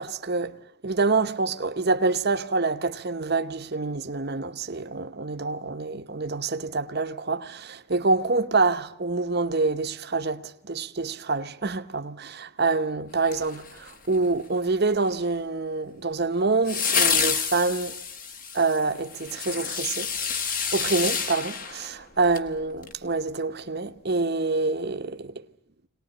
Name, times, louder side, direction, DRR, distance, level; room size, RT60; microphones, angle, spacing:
voice 1, 0.0-18.0 18.5-20.1 20.7-25.4, right 3 dB, 45° right, 0.9 m, -26 dB
sound 1, 13.2-14.2 16.7-22.5 22.8-22.9, left 6 dB, 40° left, 1.3 m, -28 dB
23.0 x 19.0 x 10.0 m
head